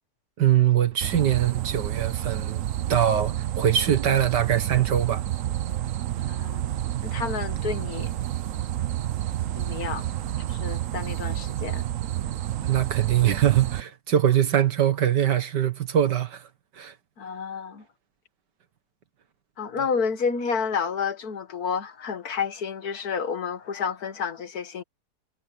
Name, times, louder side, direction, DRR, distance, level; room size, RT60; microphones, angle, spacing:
voice 1, 0.4-2.6 2.9-5.2 12.6-16.5 16.7-16.9, right 10 dB, 85° right, 2.2 m, -22 dB
sound 1, 1.0-13.8, right 12 dB, 60° right, 1.0 m, -29 dB
voice 2, 6.2-6.7 7.0-8.1 9.6-10.0 10.5-11.9 17.2-17.8 19.6-24.8, left 6 dB, 60° left, 1.9 m, -30 dB
omnidirectional pair, 1.8 m